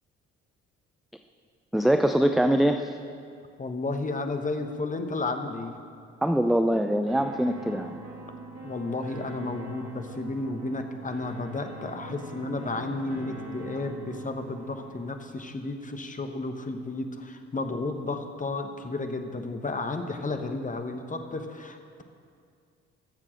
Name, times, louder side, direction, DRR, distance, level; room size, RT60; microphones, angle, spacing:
voice 1, 1.7-3.0 6.2-8.0, right 1 dB, ahead, 6 dB, 0.5 m, -23 dB
voice 2, 3.6-5.7 8.6-22.0, left 3 dB, 25° left, 6 dB, 1.2 m, -32 dB
sound 1, 7.1-15.1, right 2 dB, 50° right, 2.9 m, -43 dB
13.0 x 7.4 x 6.3 m, 2.3 s
figure-of-eight pair, 45°, 33 cm